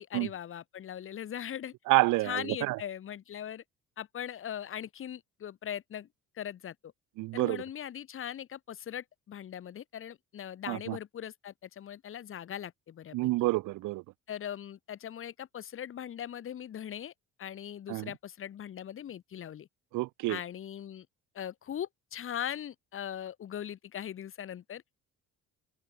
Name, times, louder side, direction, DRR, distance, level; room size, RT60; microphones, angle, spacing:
voice 1, 0.0-1.7 2.2-3.6 4.0-6.1 6.3-6.8 7.3-13.3 14.3-17.1 17.4-19.7 20.3-21.1 21.3-24.8, left 9 dB, 45° left, 7.1 m, -40 dB
voice 2, 1.9-2.8 7.2-7.6 10.7-11.0 13.1-14.0 17.9-18.1 19.9-20.4, right 20 dB, 85° right, 1.3 m, -28 dB
cardioid pair, 150°, 30 cm